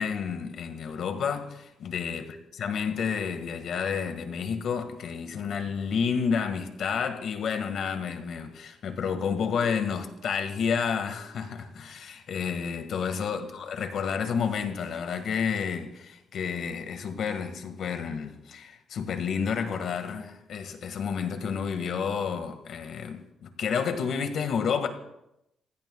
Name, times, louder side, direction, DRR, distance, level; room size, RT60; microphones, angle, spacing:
voice 1, 0.0-24.9, left 6 dB, 65° left, 1.8 m, -30 dB
29.5 x 16.0 x 2.3 m
cardioid pair, 110°, 0 cm